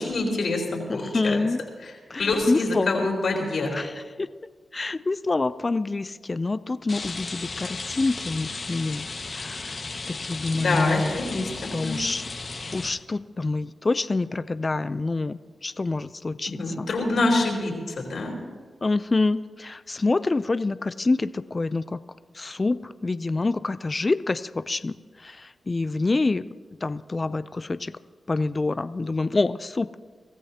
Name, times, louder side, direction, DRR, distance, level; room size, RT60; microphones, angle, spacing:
voice 1, 0.0-1.4 1.8-1.9 2.2-3.8 10.5-12.0 16.4-18.3, left 2 dB, 70° left, -1 dB, 4.0 m, -26 dB
voice 2, 0.9-1.6 2.1-3.1 3.7-4.3 4.7-9.1 9.3-9.8 10.1-12.2 12.7-16.9 18.8-22.0 22.3-26.4 26.8-27.9 28.3-30.0, left 3 dB, 35° left, 14 dB, 0.4 m, -27 dB
Rain, 6.9-12.9, left 3 dB, 55° left, 1.6 m, -35 dB
23.5 x 14.5 x 2.9 m, 1.5 s
cardioid pair, 50°, 0 cm